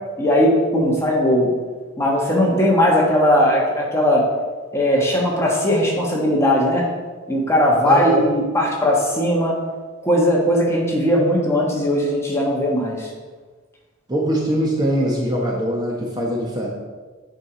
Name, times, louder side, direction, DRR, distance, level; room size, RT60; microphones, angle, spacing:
voice 1, 0.2-1.5 2.0-4.2 4.7-6.8 7.3-9.6 10.0-13.1, left 1 dB, 15° left, -3 dB, 1.4 m, -18 dB
voice 2, 7.8-8.2 14.1-16.7, right 1 dB, 20° right, -3 dB, 1.0 m, -22 dB
8.2 x 4.7 x 5.0 m, 1.4 s
head